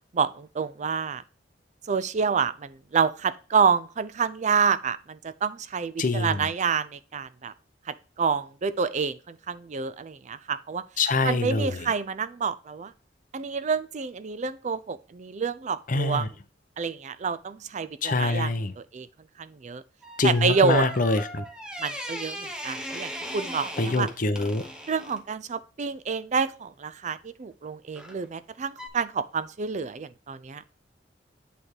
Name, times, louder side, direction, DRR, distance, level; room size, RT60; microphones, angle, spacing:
voice 1, 0.1-1.2 1.9-7.5 7.9-10.8 11.2-12.9 13.3-16.3 16.8-19.1 19.4-19.8 20.2-20.9 21.8-24.1 24.9-30.6, right 5 dB, 40° right, 0.4 m, -28 dB
voice 2, 6.0-6.5 11.0-11.8 15.9-16.3 18.0-18.7 20.2-21.4 23.8-24.6, left 3 dB, 45° left, 0.7 m, -25 dB
sound 1, 20.0-25.2 27.9-28.2 28.8-28.9, equal, 5° right, 0.9 m, -38 dB
8.7 x 3.4 x 4.5 m
head